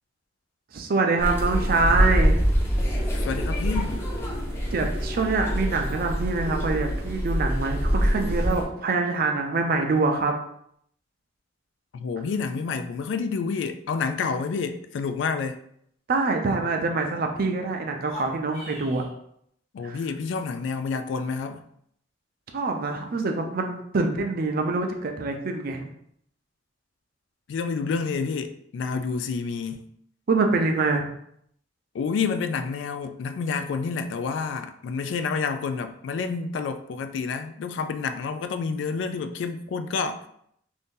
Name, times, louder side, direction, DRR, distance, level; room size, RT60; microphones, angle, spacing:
voice 1, 0.7-2.4 4.7-10.3 16.1-19.0 19.8-20.0 22.5-25.9 30.3-31.1, right 3 dB, 50° right, 0.5 m, -25 dB
sound 1, 1.2-8.6, equal, 15° left, 0.6 m, -25 dB
voice 2, 3.2-4.1 11.9-15.6 19.7-21.6 27.5-29.9 31.9-40.2, left 5 dB, 70° left, 0.3 m, -29 dB
sound 2, 17.9-19.1, left 2 dB, 35° left, 0.9 m, -41 dB
2.6 x 2.6 x 3.6 m
head